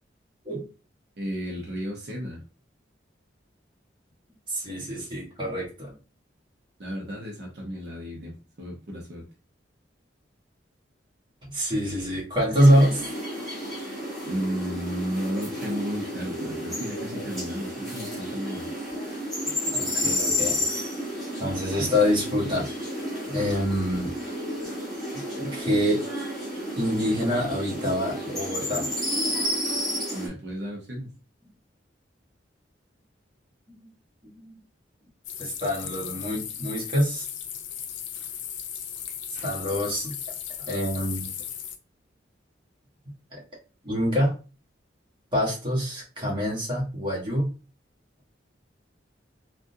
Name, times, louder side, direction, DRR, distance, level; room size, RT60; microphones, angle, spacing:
voice 1, 1.2-2.4 6.8-9.2 14.2-18.7 30.1-31.1, equal, 60° right, -2 dB, 0.9 m, -33 dB
voice 2, 4.5-5.9 11.4-13.1 19.4-20.6 21.4-22.7 23.3-24.1 24.6-24.7 25.4-26.0 26.8-28.9 33.7-33.9 34.2-34.6 35.4-37.3 39.4-40.2 40.7-41.3 43.3-43.4 43.8-44.4 45.3-47.5, equal, 25° right, -4 dB, 1.3 m, -25 dB
sound 1, 12.6-30.3, left 1 dB, ahead, 1.6 m, -31 dB
sound 2, 35.2-41.8, left 9 dB, 90° left, 0.5 m, -36 dB
3.6 x 2.5 x 2.7 m, 0.34 s
head